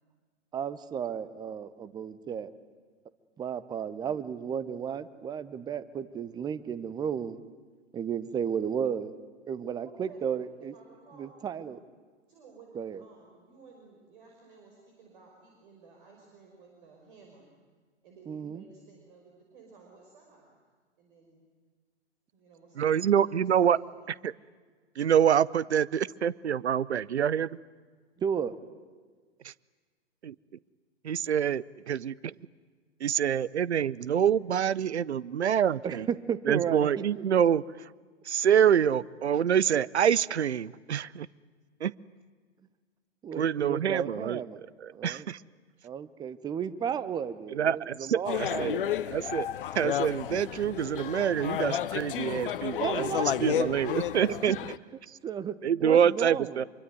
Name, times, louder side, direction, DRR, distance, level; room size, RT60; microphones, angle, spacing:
voice 1, 0.5-2.5 3.4-7.4 7.9-9.1 9.5-10.7 11.2-11.8 12.7-13.0 18.3-18.6 28.2-28.5 35.8-37.3 43.2-44.6 44.9-45.3 45.8-48.9 52.8-53.8 54.3-54.6 55.2-55.5 55.8-56.6, right 7 dB, 10° right, 15 dB, 0.8 m, -33 dB
voice 2, 9.8-10.3 10.6-11.3 12.3-17.5 18.0-20.6 21.0-21.4 22.3-24.2, right 4 dB, 45° right, 0 dB, 5.7 m, -55 dB
voice 3, 22.8-23.8 24.2-24.3 25.0-27.6 30.2-30.3 31.0-32.3 33.0-36.1 36.5-37.6 38.3-41.3 41.8-41.9 43.3-44.4 44.8-45.4 47.5-48.8 49.1-49.5 49.7-53.0 53.4-54.6 55.6-56.6, right 9 dB, 65° right, 21 dB, 0.8 m, -26 dB
sound 1, 48.2-54.8, left 10 dB, 50° left, 1.1 m, -32 dB
25.5 x 24.0 x 9.5 m, 1.5 s
figure-of-eight pair, 110°, 35 cm